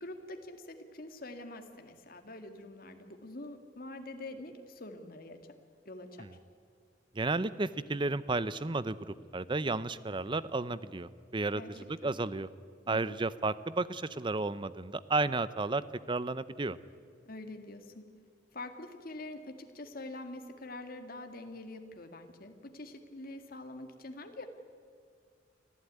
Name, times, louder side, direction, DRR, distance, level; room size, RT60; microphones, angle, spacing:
voice 1, 0.0-5.4 5.9-6.3 11.5-11.7 12.0-12.1 12.9-13.0 17.3-18.1 18.5-24.5, left 2 dB, 50° left, 6 dB, 2.0 m, -45 dB
voice 2, 7.1-12.5 12.9-16.8, right 3 dB, 25° right, 16 dB, 0.6 m, -33 dB
24.5 x 15.5 x 9.5 m, 2.2 s
head